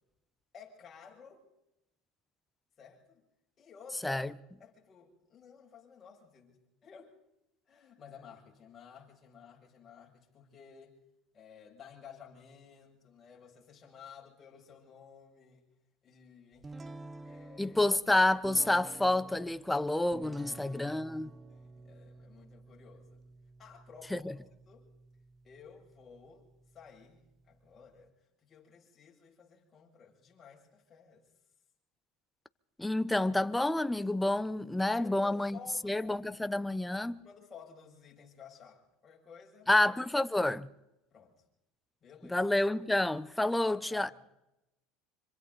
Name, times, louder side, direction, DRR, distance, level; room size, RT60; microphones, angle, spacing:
voice 1, 0.5-1.4 2.8-3.2 3.6-4.2 4.6-7.1 7.7-11.0 11.3-15.7 16.0-17.8 20.4-21.0 21.5-23.2 23.6-24.4 24.7-24.9 25.4-26.5 26.7-28.1 28.4-31.3 34.9-36.2 37.1-39.7 41.1-41.3 42.0-42.4 43.7-44.1, left 7 dB, 30° left, 7.3 m, -54 dB
sound 1, 16.6-28.1, right 3 dB, 20° right, 1.0 m, -52 dB
voice 2, 17.6-21.3 24.1-24.3 32.8-35.6 35.8-37.2 39.7-40.7 42.3-44.1, left 1 dB, 5° left, 0.9 m, -29 dB
26.0 x 25.5 x 4.1 m
supercardioid pair, 110°, 0 cm